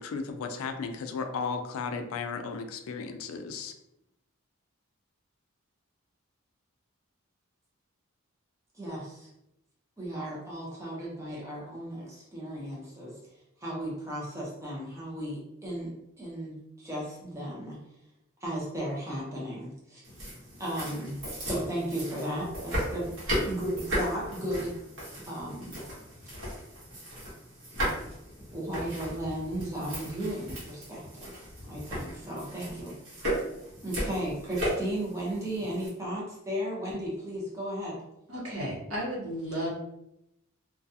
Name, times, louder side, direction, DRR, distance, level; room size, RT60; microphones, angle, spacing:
voice 1, 0.0-3.7, left 5 dB, 75° left, 6 dB, 0.3 m, -35 dB
voice 2, 8.7-9.3 10.0-13.2 13.6-17.8 18.4-20.0 20.6-23.1 23.4-24.7 25.3-25.8 28.5-31.3 31.7-32.9 33.8-38.0, right 1 dB, 15° right, -5 dB, 0.7 m, -35 dB
sound 1, 20.0-35.9, equal, 65° right, 1.1 m, -36 dB
voice 3, 38.3-39.7, equal, 80° right, -5 dB, 1.1 m, -33 dB
2.3 x 2.3 x 2.7 m, 0.84 s
head